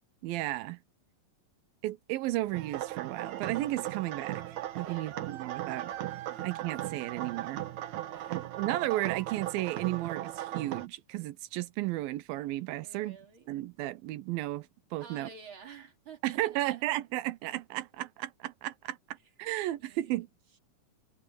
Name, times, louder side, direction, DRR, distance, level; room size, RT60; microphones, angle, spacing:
voice 1, 0.2-0.8 1.8-4.4 4.8-6.0 6.4-7.6 8.3-13.2 13.5-15.3 16.2-20.3, right 16 dB, 90° right, 2.6 m, -34 dB
sound 1, 2.2-10.4, left 4 dB, 65° left, 8.7 m, -63 dB
sound 2, 2.5-10.9, right 13 dB, 60° right, 2.3 m, -37 dB
voice 2, 4.8-5.3 6.3-6.5 8.1-8.5 12.8-13.5 15.0-16.8 19.8-20.2, right 5 dB, 40° right, 2.9 m, -51 dB
omnidirectional pair, 4.1 m